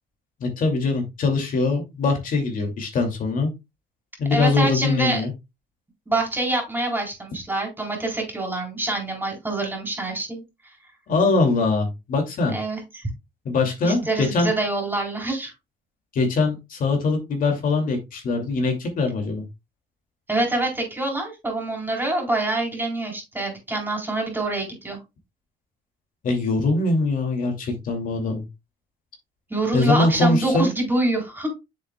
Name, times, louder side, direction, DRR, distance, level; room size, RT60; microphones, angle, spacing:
voice 1, 0.4-3.5 4.2-5.3 11.1-12.6 13.4-14.5 16.1-19.4 26.2-28.4 29.7-30.7, left 3 dB, 55° left, 2.5 m, -22 dB
voice 2, 4.3-5.2 6.1-10.4 12.5-13.1 13.8-15.5 20.3-25.0 29.5-31.5, right 2 dB, 10° right, 3.9 m, -25 dB
7.8 x 7.0 x 2.3 m
cardioid pair, 110°, 17 cm